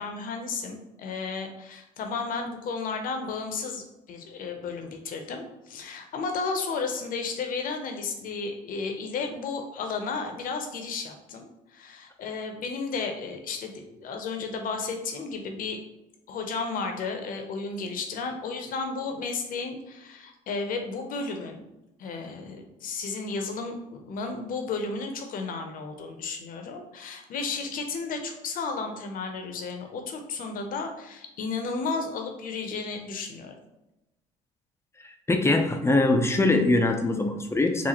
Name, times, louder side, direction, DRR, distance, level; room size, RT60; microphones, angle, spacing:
voice 1, 0.0-15.8 16.3-21.6 22.0-33.5, left 4 dB, 60° left, 5 dB, 0.7 m, -33 dB
voice 2, 35.0-37.9, left 2 dB, 15° left, 4 dB, 0.5 m, -23 dB
4.0 x 2.4 x 2.9 m, 0.94 s
supercardioid pair, 75°, 16 cm